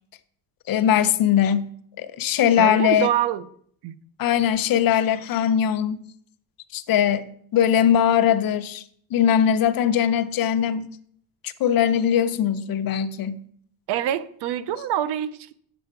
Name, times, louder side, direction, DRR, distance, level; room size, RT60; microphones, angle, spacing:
voice 1, 0.7-1.7 2.0-3.1 4.2-6.0 6.7-8.8 9.1-10.9 11.4-13.4, left 9 dB, 55° left, 0.8 m, -21 dB
voice 2, 2.6-3.5 3.8-3.9 13.9-15.6, right 11 dB, 75° right, 0.7 m, -25 dB
8.4 x 7.2 x 4.5 m
cardioid pair, 110°, 41 cm